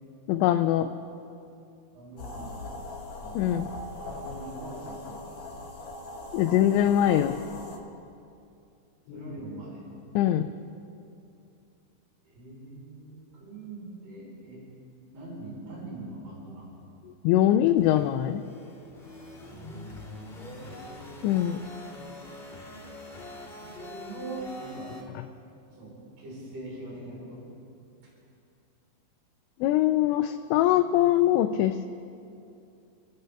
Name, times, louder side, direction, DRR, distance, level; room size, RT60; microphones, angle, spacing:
voice 1, 0.3-0.9 3.3-3.7 6.3-7.4 10.1-10.5 17.0-18.4 21.2-21.6 25.2-25.3 29.6-31.9, left 12 dB, 85° left, 7 dB, 2.8 m, -23 dB
voice 2, 1.9-2.6 3.2-3.7 4.1-5.5 6.6-7.2 9.1-9.9 12.2-14.7 15.1-16.7 19.5-21.0 23.6-25.1 25.7-27.5 28.0-28.1, right 2 dB, 80° right, -4 dB, 6.1 m, -43 dB
sound 1, 2.2-7.8, left 2 dB, 55° left, 2.0 m, -40 dB
sound 2, 17.8-25.0, left 2 dB, 15° left, 2.1 m, -44 dB
27.5 x 13.5 x 3.4 m, 2.6 s
omnidirectional pair, 5.3 m